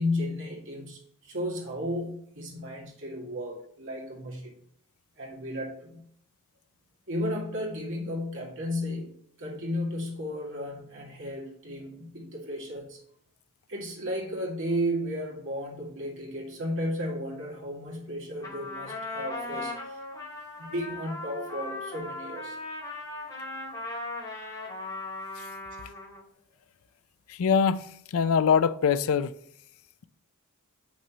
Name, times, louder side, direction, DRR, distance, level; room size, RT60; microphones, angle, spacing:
voice 1, 0.0-4.5 5.2-6.1 7.1-13.0 13.7-20.0 20.6-22.6, equal, 60° right, 2.1 m, -34 dB
Trumpet, 18.4-26.2, left 2 dB, 15° left, 2.9 m, -38 dB
voice 2, 27.3-29.3, left 6 dB, 65° left, 0.4 m, -24 dB
6.6 x 6.1 x 2.9 m
head